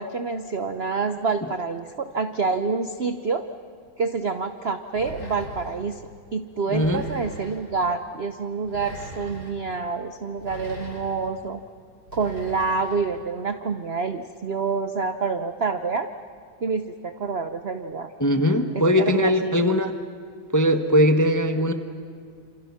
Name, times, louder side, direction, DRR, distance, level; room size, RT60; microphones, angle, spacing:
voice 1, 0.0-3.5 4.0-6.0 6.3-11.6 12.1-16.1 16.6-18.1 18.7-19.8, right 4 dB, 55° right, 8 dB, 0.7 m, -27 dB
sound 1, 5.0-5.8 6.7-7.6 8.6-9.5 10.4-11.3 12.1-13.0, equal, 55° left, 8.8 m, -39 dB
voice 2, 6.7-7.0 18.2-19.9 20.5-21.7, equal, 15° left, 7 dB, 0.7 m, -20 dB
28.0 x 27.0 x 5.9 m, 2.2 s
omnidirectional pair, 2.2 m